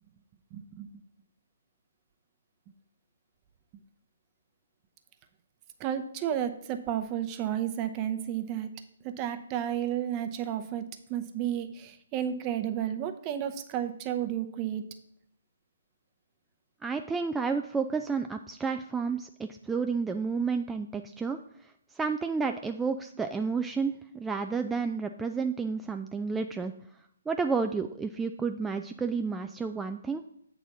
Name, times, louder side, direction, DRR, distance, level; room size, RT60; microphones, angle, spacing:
voice 1, 0.5-0.9 5.8-8.7 9.0-10.8 11.1-14.8, right 10 dB, 25° right, 7 dB, 0.7 m, -32 dB
voice 2, 16.8-21.4 22.0-26.7 27.3-30.2, right 5 dB, 10° right, 6 dB, 0.3 m, -31 dB
8.1 x 4.0 x 6.0 m, 0.73 s
figure-of-eight pair, 135°, 0 cm